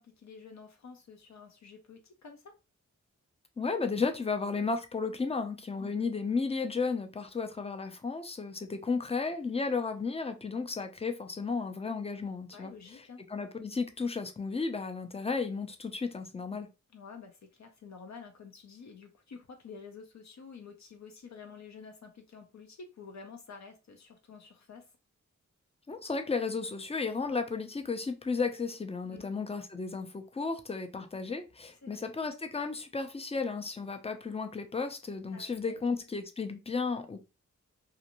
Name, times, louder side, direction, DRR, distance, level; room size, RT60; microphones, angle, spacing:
voice 1, 0.0-2.5 5.8-5.9 12.5-13.2 16.9-24.8 29.1-29.3 31.8-32.0 35.3-35.9, left 5 dB, 70° left, 0.6 m, -49 dB
voice 2, 3.6-13.0 13.3-16.7 25.9-37.2, left 4 dB, 20° left, 0.4 m, -33 dB
2.6 x 2.5 x 2.9 m
wide cardioid pair, 120°, 29 cm